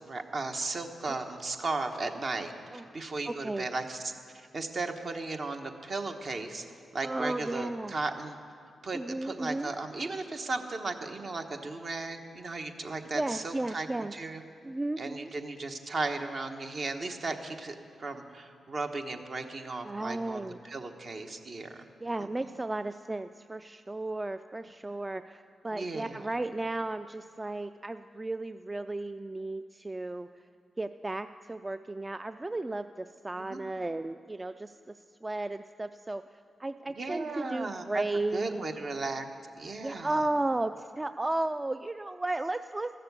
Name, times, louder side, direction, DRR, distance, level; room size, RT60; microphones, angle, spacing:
voice 1, 0.0-6.6 6.9-8.3 8.8-14.4 15.0-21.8 22.4-22.6 25.7-26.3 33.4-33.6 37.0-38.0 38.3-39.3 39.6-40.1, right 3 dB, 55° right, 5 dB, 1.1 m, -36 dB
voice 2, 3.3-3.7 7.0-7.9 8.9-9.7 13.1-14.1 14.6-15.3 19.8-20.6 22.0-30.3 30.8-34.9 35.2-36.2 36.6-38.6 39.8-43.0, right 2 dB, 25° right, 11 dB, 0.3 m, -34 dB
13.5 x 6.7 x 8.1 m, 2.3 s
supercardioid pair, 45°, 0 cm